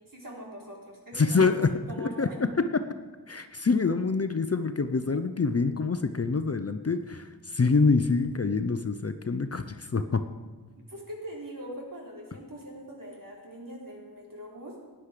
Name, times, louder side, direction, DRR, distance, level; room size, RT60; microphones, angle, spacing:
voice 1, 0.1-2.4 10.9-14.7, right 1 dB, 55° right, -3 dB, 3.7 m, -42 dB
voice 2, 1.1-1.7 2.0-2.9 3.3-10.2, left 4 dB, 35° left, 9 dB, 0.6 m, -26 dB
14.0 x 9.9 x 5.1 m, 1.4 s
wide cardioid pair, 45°, 40 cm